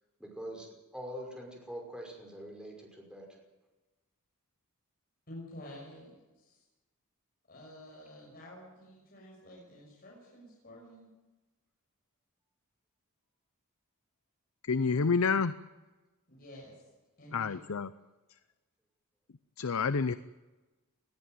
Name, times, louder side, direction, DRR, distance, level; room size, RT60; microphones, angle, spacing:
voice 1, 0.2-3.3 8.2-8.5, equal, 5° right, 0 dB, 5.7 m, -44 dB
voice 2, 5.3-6.6 7.5-11.1 16.3-16.8 17.2-17.6, left 1 dB, 45° left, -3 dB, 6.4 m, -50 dB
voice 3, 14.7-15.5 17.3-17.9 19.6-20.2, left 5 dB, 70° left, 14 dB, 0.6 m, -28 dB
20.5 x 14.0 x 9.3 m, 1.1 s
head